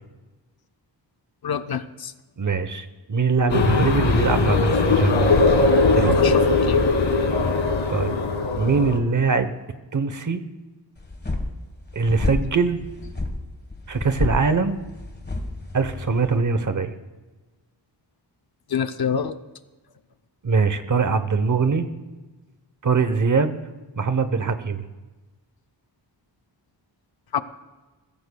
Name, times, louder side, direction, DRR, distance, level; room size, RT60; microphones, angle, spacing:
voice 1, 1.4-2.1 6.2-6.9 18.7-19.4 27.3-27.4, left 7 dB, 55° left, 10 dB, 0.6 m, -26 dB
voice 2, 2.4-5.3 5.9-6.2 7.9-8.2 8.5-9.5 9.9-10.4 11.9-12.8 13.9-14.8 15.7-16.9 20.4-21.9 22.8-23.5 24.0-24.8, right 4 dB, 45° right, 11 dB, 0.8 m, -22 dB
sound 1, 3.5-9.0, left 3 dB, 85° left, 1.7 m, -20 dB
sound 2, 11.0-16.4, left 2 dB, 20° left, 1.4 m, -30 dB
21.5 x 15.5 x 2.3 m, 1.2 s
wide cardioid pair, 130°, 44 cm